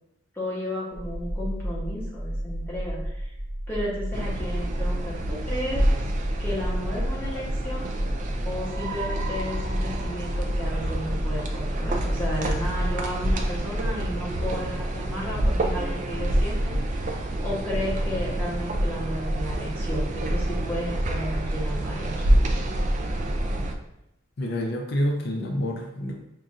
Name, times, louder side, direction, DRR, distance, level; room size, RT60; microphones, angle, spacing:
voice 1, 0.3-3.3 3.7-5.9 6.4-7.9 8.4-22.5, left 1 dB, 10° left, -6 dB, 0.9 m, -33 dB
sound 1, 0.9-13.5, equal, 80° right, 1.2 m, -33 dB
sound 2, 4.1-23.7, right 1 dB, 35° right, 0.3 m, -27 dB
voice 2, 24.4-26.1, equal, 50° left, 1 dB, 0.5 m, -27 dB
5.6 x 2.4 x 2.5 m, 0.85 s
head